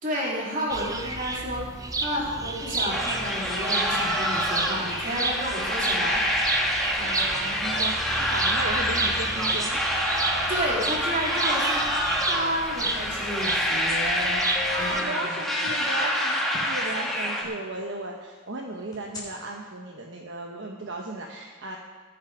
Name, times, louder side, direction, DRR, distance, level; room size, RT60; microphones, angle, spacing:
voice 1, 0.0-1.7 2.0-6.3 10.5-11.8 12.2-14.4 14.8-15.3, equal, 40° right, -4 dB, 3.5 m, -31 dB
sound 1, 0.7-15.0, right 3 dB, 15° right, 0.7 m, -31 dB
sound 2, 2.9-17.4, equal, ahead, 1.7 m, -27 dB
voice 2, 6.9-9.8 11.3-11.7 14.2-21.8, right 2 dB, 60° right, 0 dB, 1.1 m, -36 dB
sound 3, 14.5-16.3 18.9-19.2, left 6 dB, 20° left, 3.4 m, -39 dB
20.0 x 7.3 x 5.0 m, 1.4 s
head